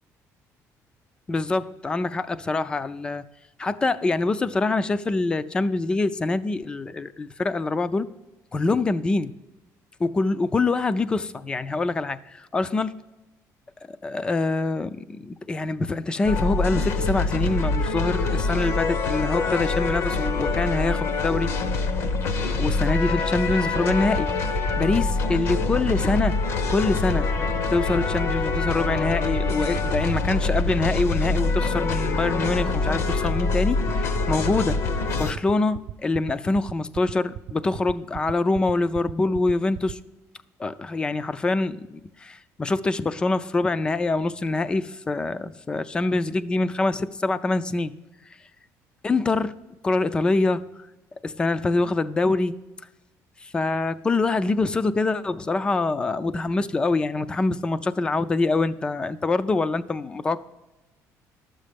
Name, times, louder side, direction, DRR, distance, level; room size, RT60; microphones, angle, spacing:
voice 1, 1.3-3.2 3.6-8.1 8.5-9.3 10.0-13.0 13.9-21.5 22.6-24.3 24.8-26.4 26.7-27.3 27.7-34.8 35.1-40.0 40.6-47.9 49.0-49.5 49.8-50.6 51.2-52.6 53.4-60.4, left 3 dB, 15° left, 0.4 m, -25 dB
sound 1, 16.2-35.3, left 3 dB, 45° left, 0.8 m, -25 dB
sound 2, 22.7-39.9, right 13 dB, 55° right, 0.4 m, -35 dB
12.5 x 7.5 x 5.1 m
cardioid pair, 180°, 6 cm